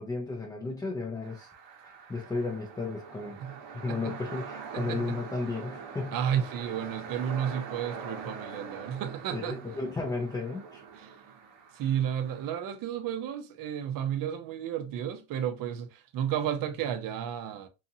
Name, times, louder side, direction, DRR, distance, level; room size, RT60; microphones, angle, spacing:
voice 1, 0.0-1.5 1.8-3.4 3.7-6.2 9.3-10.8, left 3 dB, 10° left, 0.4 m, -34 dB
sound 1, 1.2-12.6, right 5 dB, 65° right, 0.9 m, -44 dB
voice 2, 3.9-4.2 4.7-5.1 6.1-9.6 11.0-11.1 11.7-17.7, right 9 dB, 45° right, 0.6 m, -32 dB
2.7 x 2.5 x 2.6 m
supercardioid pair, 100°, 50 cm